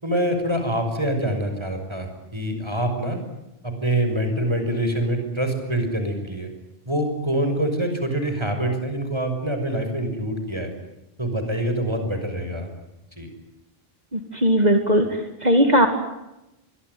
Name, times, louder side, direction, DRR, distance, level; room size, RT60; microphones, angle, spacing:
voice 1, 0.0-3.2 3.6-6.5 6.9-10.7 11.2-12.7 13.2-13.3, right 1 dB, 25° right, 6 dB, 6.2 m, -25 dB
voice 2, 14.1-15.9, equal, 40° right, 6 dB, 2.5 m, -19 dB
26.0 x 22.5 x 9.5 m, 0.92 s
omnidirectional pair, 1.0 m